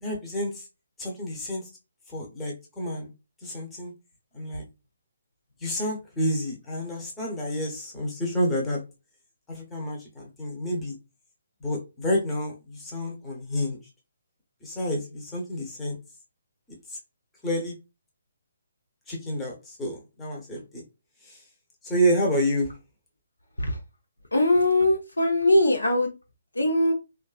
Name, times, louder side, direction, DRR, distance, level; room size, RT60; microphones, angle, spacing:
voice 1, 0.0-0.6 1.0-1.6 2.1-3.1 3.4-3.9 4.3-4.6 5.6-8.8 9.5-11.0 11.6-13.8 14.6-16.0 16.9-17.0 17.4-17.7 19.1-20.8 21.3-21.4 21.8-22.7, equal, 10° left, 0.8 m, -29 dB
voice 2, 24.3-26.1 26.6-26.9, left 1 dB, 85° left, 0.8 m, -21 dB
2.5 x 2.4 x 2.4 m
figure-of-eight pair, 140°, 0 cm